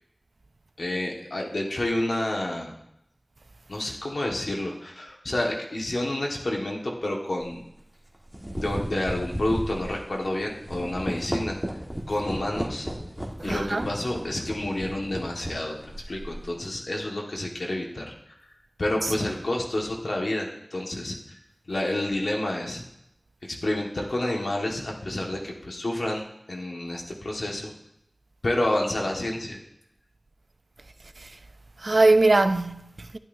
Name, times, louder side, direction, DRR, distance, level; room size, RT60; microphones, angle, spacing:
voice 1, 0.8-2.8 3.7-7.6 8.6-11.6 12.1-12.9 13.4-18.1 18.4-21.4 21.7-22.8 23.4-27.7 28.4-29.6, left 1 dB, 85° left, 1.6 m, -29 dB
sound 1, 7.4-7.6 8.1-16.6, equal, 5° right, 1.5 m, -34 dB
voice 2, 13.4-13.9 19.0-19.1 31.2-31.3 31.8-33.2, right 2 dB, 70° right, 0.5 m, -22 dB
12.5 x 11.0 x 2.7 m
wide cardioid pair, 50°, 0 cm